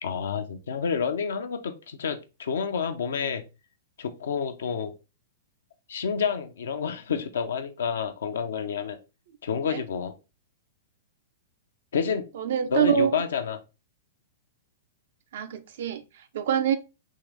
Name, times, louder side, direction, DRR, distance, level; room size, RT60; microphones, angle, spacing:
voice 1, 0.0-3.4 4.0-5.0 5.9-9.0 9.4-10.1 11.9-12.3 12.7-13.6, left 6 dB, 70° left, 0.6 m, -29 dB
voice 2, 12.4-13.1 15.3-16.0 16.3-16.8, right 8 dB, 60° right, 0.5 m, -24 dB
3.7 x 3.1 x 3.3 m
figure-of-eight pair, 105°, 0 cm